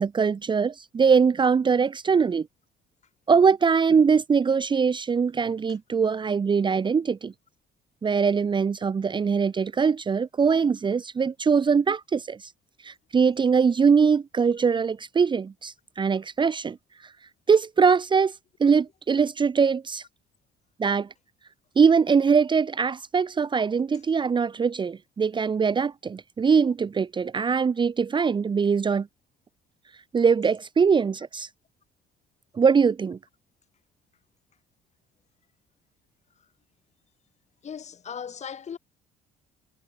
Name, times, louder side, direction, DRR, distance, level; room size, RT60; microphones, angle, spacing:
voice 1, 0.0-2.5 3.3-7.3 8.0-12.5 12.8-16.8 17.0-17.1 17.5-20.0 20.8-21.1 21.8-29.1 30.1-31.5 32.5-33.2, right 6 dB, 30° right, 0.9 m, -22 dB
voice 2, 37.6-38.8, left 7 dB, 40° left, 7.5 m, -38 dB
cardioid pair, 110°, 17 cm